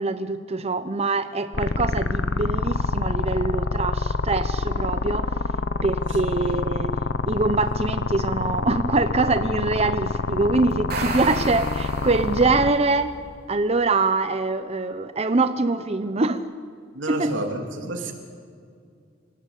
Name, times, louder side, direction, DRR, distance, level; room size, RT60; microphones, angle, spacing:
voice 1, 0.0-5.3 5.8-6.9 7.3-13.2 13.5-16.4 17.1-17.4, right 3 dB, 35° right, 10 dB, 0.8 m, -24 dB
sound 1, 1.5-12.7, left 3 dB, 70° left, 1.0 m, -26 dB
sound 2, 10.7-12.7, right 4 dB, 55° right, 4.0 m, -33 dB
voice 2, 16.9-18.1, right 1 dB, 85° right, 3 dB, 3.4 m, -29 dB
27.0 x 18.5 x 8.3 m, 2.3 s
head